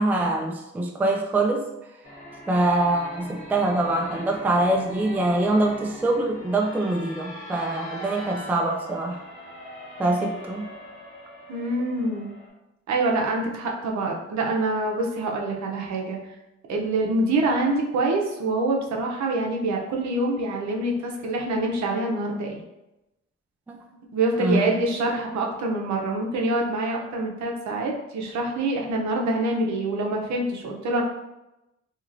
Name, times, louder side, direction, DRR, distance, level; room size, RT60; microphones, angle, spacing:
voice 1, 0.0-1.7 2.5-9.2 10.0-10.7 23.7-23.9 24.4-24.7, right 2 dB, 5° right, 1 dB, 0.3 m, -24 dB
sound 1, 2.0-12.5, equal, 25° left, 1.3 m, -41 dB
voice 2, 11.5-12.3 12.9-16.2 16.7-22.6 24.1-31.0, right 2 dB, 65° right, 0 dB, 0.7 m, -25 dB
2.9 x 2.9 x 2.6 m, 0.94 s
cardioid pair, 90°, 30 cm